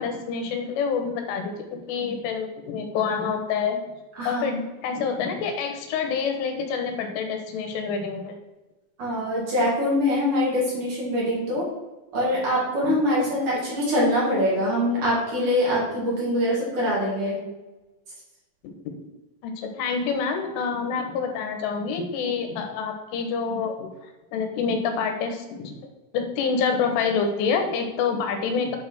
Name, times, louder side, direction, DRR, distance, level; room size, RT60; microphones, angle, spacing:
voice 1, 0.0-3.8 4.3-8.4 18.6-18.7 19.4-23.9 24.3-25.7 26.1-28.8, left 5 dB, 90° left, 5 dB, 3.7 m, -27 dB
voice 2, 4.2-4.5 9.0-11.7 12.1-17.4, left 1 dB, 45° right, -6 dB, 4.0 m, -23 dB
8.9 x 4.9 x 6.1 m, 1.1 s
omnidirectional pair, 5.5 m